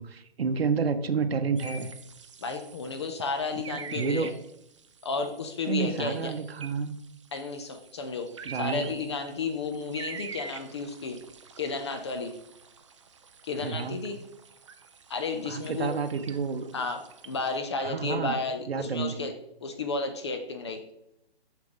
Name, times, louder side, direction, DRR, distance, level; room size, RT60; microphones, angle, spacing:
voice 1, 0.0-1.9 3.7-4.3 5.7-7.0 8.4-8.9 13.6-14.0 15.4-16.9 17.8-18.4 18.7-19.3, right 5 dB, 75° right, 8 dB, 0.8 m, -30 dB
sound 1, 1.6-17.6, right 5 dB, 30° right, 0.4 m, -46 dB
voice 2, 2.4-4.3 5.0-6.3 7.3-8.3 8.6-11.2 11.6-12.3 13.4-14.2 15.1-15.9 16.7-19.3 19.6-20.8, left 4 dB, 30° left, 6 dB, 0.5 m, -32 dB
6.5 x 6.0 x 3.8 m, 0.81 s
hypercardioid pair, 150°, 31 cm